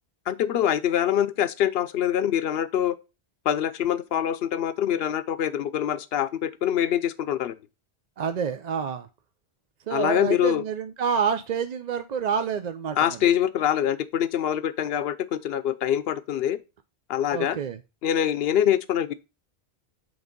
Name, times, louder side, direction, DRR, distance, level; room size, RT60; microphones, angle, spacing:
voice 1, 0.3-3.0 3.4-7.6 9.9-10.6 13.0-16.6 17.1-17.6 18.0-19.1, left 10 dB, 70° left, 0.9 m, -24 dB
voice 2, 8.2-9.1 9.9-13.2 17.3-17.8, right 7 dB, 50° right, 0.6 m, -28 dB
7.9 x 3.6 x 5.1 m
omnidirectional pair, 1.0 m